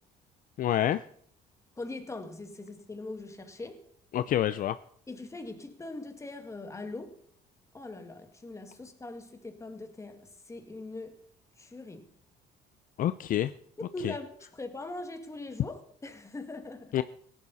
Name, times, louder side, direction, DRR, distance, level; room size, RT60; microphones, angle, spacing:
voice 1, 0.6-1.0 4.1-4.8 13.0-13.5 14.0-14.1 16.9-17.0, left 12 dB, 55° left, 0.5 m, -27 dB
voice 2, 1.8-3.8 5.1-7.2 7.7-11.2 11.6-12.1 13.8-16.9, left 2 dB, 15° left, 2.0 m, -41 dB
17.0 x 11.5 x 4.1 m
cardioid pair, 110°, 17 cm